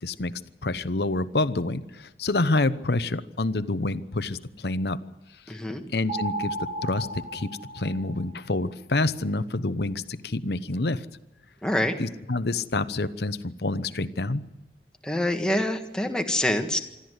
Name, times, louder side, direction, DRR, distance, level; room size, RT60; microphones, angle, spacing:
voice 1, 0.0-5.0 5.5-5.6 5.9-6.6 6.8-11.1 12.0-14.4, left 2 dB, 65° left, 13 dB, 0.9 m, -27 dB
voice 2, 5.5-5.8 11.6-12.0 15.0-16.8, left 1 dB, 5° left, 4 dB, 1.7 m, -26 dB
sound 1, 6.1-8.5, right 2 dB, 45° right, 4.0 m, -34 dB
26.0 x 13.0 x 8.1 m, 0.97 s
head